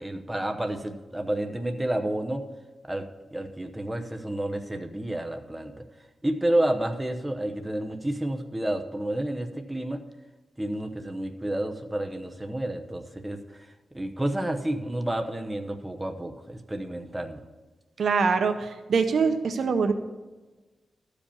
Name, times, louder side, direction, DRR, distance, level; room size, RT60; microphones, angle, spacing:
voice 1, 0.0-2.4 2.9-5.7 6.2-10.0 10.6-13.7 13.9-17.4, right 1 dB, 10° right, 4 dB, 0.8 m, -30 dB
voice 2, 18.0-19.9, right 5 dB, 70° right, 8 dB, 0.8 m, -24 dB
13.5 x 5.1 x 7.0 m, 1.2 s
wide cardioid pair, 120°, 0 cm